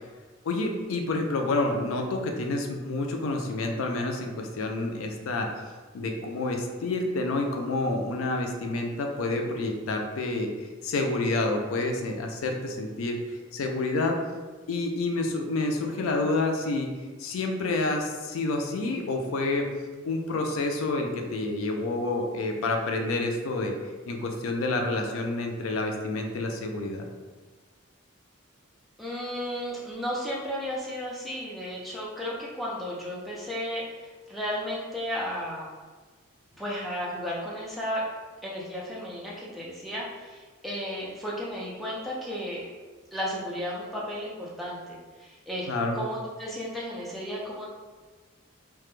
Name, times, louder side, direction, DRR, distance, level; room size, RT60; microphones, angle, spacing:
voice 1, 0.5-5.5 5.9-10.5 10.8-13.2 13.5-14.2 14.7-16.9 17.2-19.7 20.1-23.7 24.1-27.1 45.7-46.0, left 2 dB, 80° left, 3 dB, 0.4 m, -28 dB
voice 2, 29.0-35.7 36.6-38.0 38.4-42.7 43.1-45.7 45.9-47.7, equal, ahead, -6 dB, 0.3 m, -34 dB
2.1 x 2.0 x 3.0 m, 1.4 s
head